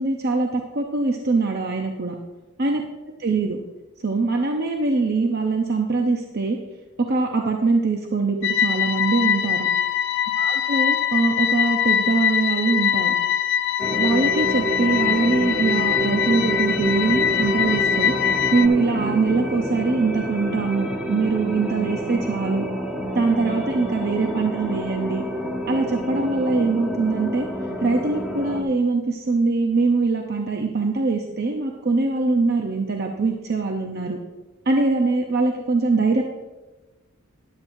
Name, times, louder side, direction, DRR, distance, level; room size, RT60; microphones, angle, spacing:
voice 1, 0.0-2.1 2.6-2.8 3.2-3.6 4.0-6.6 7.1-9.7 10.4-13.1 13.9-18.1 18.5-22.7 23.1-25.2 25.7-27.5 27.8-34.2 34.7-36.2, right 3 dB, 45° right, 2 dB, 0.7 m, -22 dB
sound 1, 8.4-18.7, left 9 dB, 55° left, 0.3 m, -23 dB
sound 2, 13.8-28.6, equal, 5° right, 1.1 m, -28 dB
13.0 x 10.5 x 2.7 m, 1.1 s
head